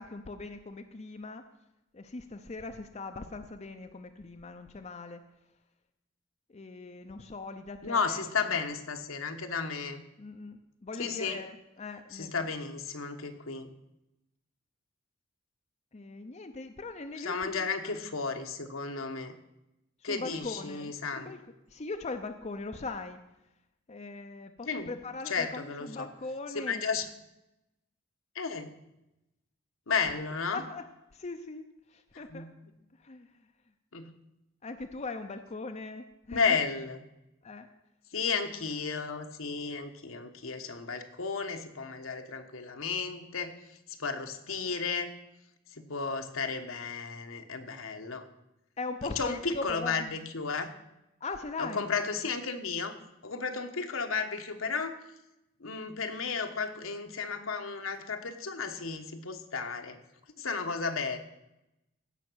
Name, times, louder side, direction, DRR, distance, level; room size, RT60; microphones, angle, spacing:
voice 1, 0.0-1.4 1.9-5.2 6.5-8.2 10.2-12.4 15.9-18.0 20.0-21.4 21.7-23.2 23.9-26.9 30.5-30.8 31.1-31.6 31.9-32.5 33.0-33.3 34.6-36.6 37.4-37.7 48.8-50.1 51.2-51.9, left 3 dB, 35° left, 7 dB, 0.6 m, -40 dB
voice 2, 7.8-10.0 11.0-11.4 12.1-13.7 17.2-19.3 20.0-21.3 24.7-24.9 25.3-26.1 26.5-27.1 28.3-28.7 29.9-30.6 32.3-32.5 33.9-34.1 36.3-37.0 38.1-43.5 44.0-45.1 45.7-48.2 49.2-50.7 51.6-53.0 53.2-55.0 55.6-60.0 60.4-61.2, left 5 dB, 75° left, 6 dB, 1.2 m, -33 dB
16.0 x 5.9 x 6.2 m, 0.90 s
head